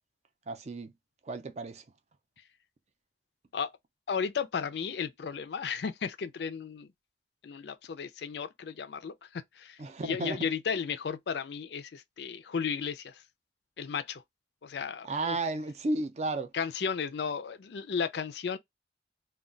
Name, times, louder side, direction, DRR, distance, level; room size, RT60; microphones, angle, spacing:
voice 1, 0.5-0.9 1.2-1.8 9.8-10.4 15.0-16.5, right 2 dB, 40° right, 0.4 m, -33 dB
voice 2, 4.1-6.9 7.4-13.2 13.8-14.2 14.6-15.4 16.5-18.6, left 6 dB, 70° left, 0.4 m, -34 dB
2.3 x 2.1 x 3.7 m
head